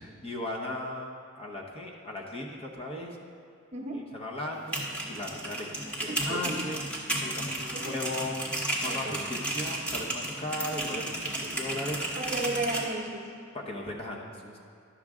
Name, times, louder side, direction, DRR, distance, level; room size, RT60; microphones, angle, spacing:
voice 1, 0.0-3.2 4.1-6.8 7.2-8.5 8.8-12.1 13.7-14.6, left 1 dB, 25° left, -2 dB, 0.9 m, -37 dB
voice 2, 3.7-4.1 6.1-6.6 7.7-8.0 8.9-9.3 12.2-13.3, right 2 dB, 30° right, 0 dB, 0.9 m, -34 dB
sound 1, 4.5-12.8, right 1 dB, 5° left, 1.1 m, -33 dB
11.5 x 6.4 x 3.6 m, 2.5 s
head